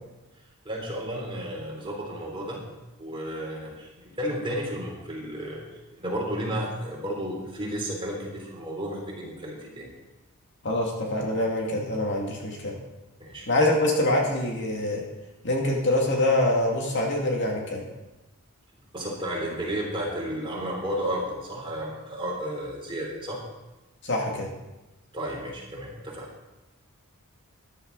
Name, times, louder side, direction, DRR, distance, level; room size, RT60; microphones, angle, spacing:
voice 1, 0.7-2.6 3.0-5.6 5.9-9.9 13.2-13.5 18.9-23.4 25.1-26.3, equal, 25° right, -2 dB, 3.4 m, -32 dB
voice 2, 10.6-12.8 13.5-15.0 15.4-17.8 24.0-24.5, left 1 dB, 55° left, 0 dB, 2.3 m, -25 dB
13.5 x 11.5 x 4.0 m, 1.1 s
head